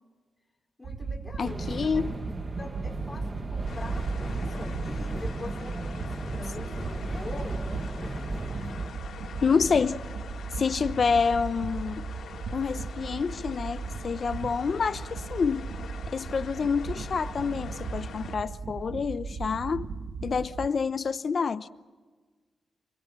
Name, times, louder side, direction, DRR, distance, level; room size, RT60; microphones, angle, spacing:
voice 1, 0.8-1.9 2.5-7.7, left 2 dB, 10° left, 4.7 m, -43 dB
sound 1, 0.8-20.7, right 4 dB, 80° right, 1.5 m, -37 dB
voice 2, 1.4-2.1 9.4-10.0 10.5-12.1 12.5-15.7 16.1-19.9 20.2-21.7, left 5 dB, 45° left, 0.8 m, -28 dB
sound 2, 1.4-8.9, right 2 dB, 25° right, 1.4 m, -36 dB
sound 3, 3.7-18.4, left 6 dB, 80° left, 3.0 m, -45 dB
28.0 x 22.0 x 7.4 m
wide cardioid pair, 170°, 0 cm